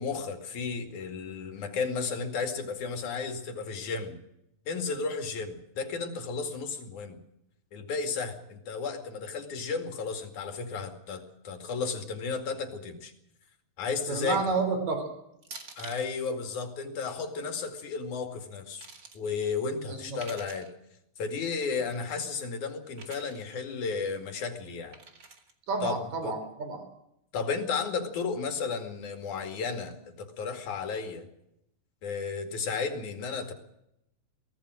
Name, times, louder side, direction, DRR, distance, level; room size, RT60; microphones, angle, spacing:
voice 1, 0.0-4.2 4.7-7.2 7.7-13.1 13.8-14.4 15.8-18.9 19.1-20.7 21.2-25.0 25.8-26.3 27.3-31.3 32.0-33.5, left 5 dB, 85° left, 5 dB, 3.8 m, -33 dB
voice 2, 14.1-15.1 19.9-20.2 21.8-21.9 25.7-26.9, right 4 dB, 70° right, 7 dB, 5.1 m, -30 dB
sound 1, 14.2-14.5 15.4-16.1 17.5-17.8 18.4-19.2 20.0-20.7 21.6-22.0 22.9-23.4 24.9-25.5, right 4 dB, 35° right, 2.1 m, -48 dB
23.5 x 17.5 x 6.4 m, 0.82 s
omnidirectional pair, 3.4 m